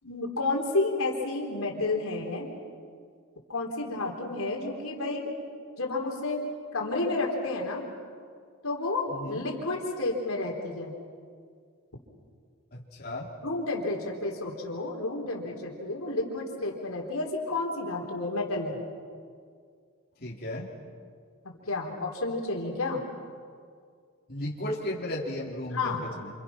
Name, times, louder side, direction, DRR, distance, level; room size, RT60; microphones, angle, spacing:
voice 1, 0.0-2.5 3.5-5.3 5.8-6.4 6.7-7.9 8.6-10.9 13.4-18.8 21.4-23.0 25.7-26.0, left 2 dB, 80° left, 0 dB, 3.9 m, -31 dB
voice 2, 9.1-9.4 12.7-13.3 20.2-20.7 24.3-26.3, left 1 dB, 45° left, -4 dB, 3.6 m, -35 dB
28.5 x 28.0 x 6.0 m, 2.1 s
head